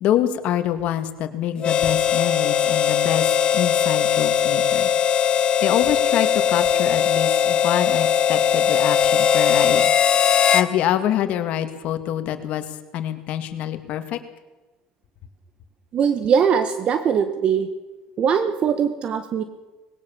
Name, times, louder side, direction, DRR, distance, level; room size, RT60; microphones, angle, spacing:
voice 1, 0.0-4.9 5.6-9.9 10.5-12.6 12.9-14.2, left 11 dB, 60° left, 8 dB, 2.1 m, -25 dB
Harmonica, 1.6-10.7, left 8 dB, 40° left, 1.3 m, -19 dB
voice 2, 15.9-17.7 18.2-19.4, right 7 dB, 45° right, 10 dB, 1.5 m, -21 dB
20.5 x 17.5 x 7.2 m, 1.1 s
supercardioid pair, 110°, 3 cm